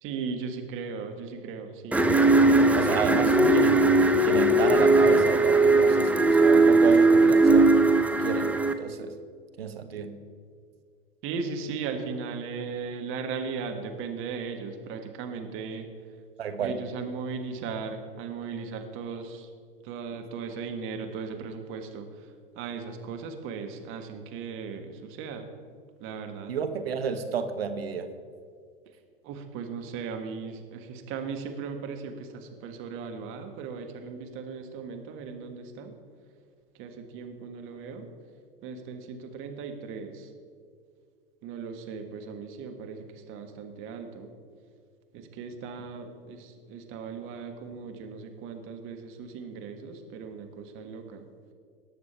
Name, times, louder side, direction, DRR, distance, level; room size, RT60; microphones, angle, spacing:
voice 1, 0.0-2.0 2.3-3.2 11.2-15.9 16.6-19.5 19.8-25.5 26.0-26.5 29.2-35.9 36.8-38.1 38.6-40.3 41.4-44.3 45.1-51.3, right 5 dB, 45° right, 5 dB, 1.5 m, -37 dB
sound 1, 1.9-8.7, right 2 dB, 5° right, 0.6 m, -19 dB
voice 2, 2.8-3.8 4.2-9.1 9.6-10.2 16.4-16.8 26.5-28.1, right 6 dB, 85° right, 9 dB, 1.0 m, -31 dB
18.5 x 6.8 x 4.4 m, 2.1 s
hypercardioid pair, 100°, 29 cm